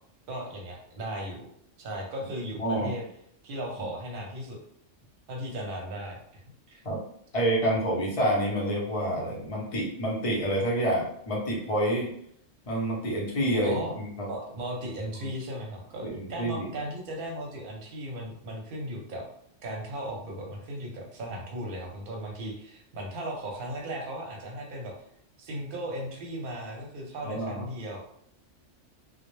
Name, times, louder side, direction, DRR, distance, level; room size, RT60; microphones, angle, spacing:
voice 1, 0.3-1.5 1.8-3.0 3.4-4.6 5.3-6.4 6.7-6.8 13.6-13.9 14.3-19.3 19.6-24.9 25.4-28.0, right 1 dB, 55° right, 0 dB, 0.7 m, -36 dB
voice 2, 2.6-2.9 6.8-7.0 7.3-12.1 12.7-14.3 15.2-15.3 16.0-16.7 27.2-27.6, right 1 dB, 35° left, -4 dB, 0.6 m, -28 dB
2.2 x 2.1 x 3.0 m, 0.68 s
omnidirectional pair, 1.3 m